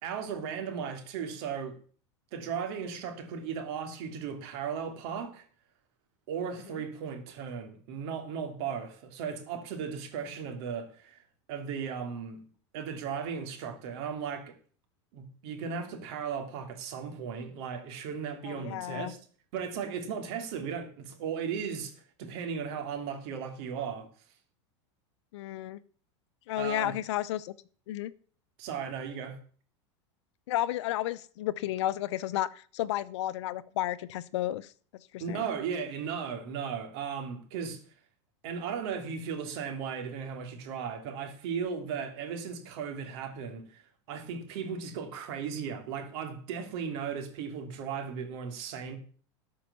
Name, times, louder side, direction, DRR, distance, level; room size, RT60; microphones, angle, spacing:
voice 1, 0.0-1.8 2.3-5.4 6.3-11.2 11.5-12.4 12.7-14.5 15.1-19.2 19.5-24.1 26.6-26.9 28.6-29.4 35.2-37.8 38.4-43.8 44.1-49.0, right 6 dB, 60° right, 2.9 m, -36 dB
voice 2, 18.4-19.1 25.3-25.8 26.5-27.5 27.9-28.1 30.5-34.7 35.1-35.5, left 14 dB, 70° left, 0.8 m, -32 dB
12.5 x 5.7 x 7.1 m
supercardioid pair, 120°, 15 cm